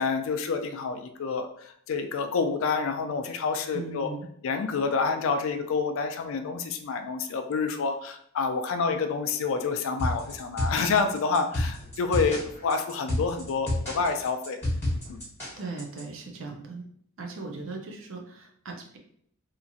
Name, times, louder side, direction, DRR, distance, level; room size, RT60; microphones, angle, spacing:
voice 1, 0.0-1.5 1.9-4.1 4.4-14.6 15.1-15.2, left 4 dB, 65° left, 7 dB, 0.4 m, -28 dB
voice 2, 3.7-4.3 15.6-16.8 17.2-19.0, right 3 dB, 65° right, 2 dB, 0.5 m, -38 dB
sound 1, 10.0-16.0, left 1 dB, 10° left, 1.5 m, -30 dB
2.9 x 2.4 x 2.6 m, 0.66 s
head